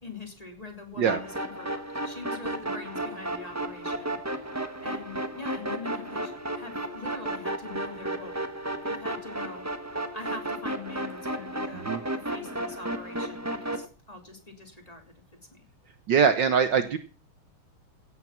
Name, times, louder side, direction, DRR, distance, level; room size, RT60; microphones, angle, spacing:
voice 1, 0.0-8.4 8.8-9.6 10.1-11.9 12.1-15.0 15.5-15.6, left 3 dB, 15° left, 4 dB, 3.2 m, -43 dB
sound 1, 1.1-13.9, right 1 dB, 10° right, 0.9 m, -33 dB
voice 2, 16.1-17.0, right 7 dB, 60° right, 10 dB, 1.5 m, -22 dB
16.0 x 9.3 x 5.9 m, 0.37 s
omnidirectional pair, 2.4 m